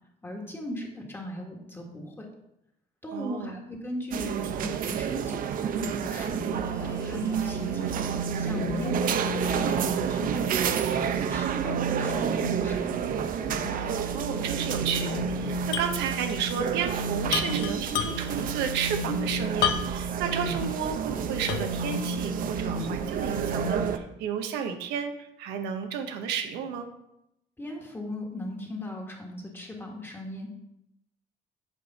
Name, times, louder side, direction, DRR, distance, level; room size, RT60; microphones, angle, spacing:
voice 1, 0.2-2.3 3.0-13.2 27.6-30.5, left 1 dB, 15° left, 1 dB, 1.5 m, -38 dB
voice 2, 3.1-3.6 8.8-9.0 13.8-26.9, right 7 dB, 90° right, 5 dB, 0.9 m, -32 dB
sound 1, 4.1-24.0, right 8 dB, 55° right, 0.6 m, -31 dB
sound 2, 6.1-12.8 13.4-20.7 21.1-23.9, right 2 dB, 30° left, 1.7 m, -34 dB
sound 3, 15.7-16.0 16.3-16.4 17.3-18.4 19.6-20.1 20.6-20.7 21.5-21.9, left 8 dB, 75° left, 0.7 m, -29 dB
7.6 x 4.9 x 4.1 m, 0.84 s
cardioid pair, 110°, 17 cm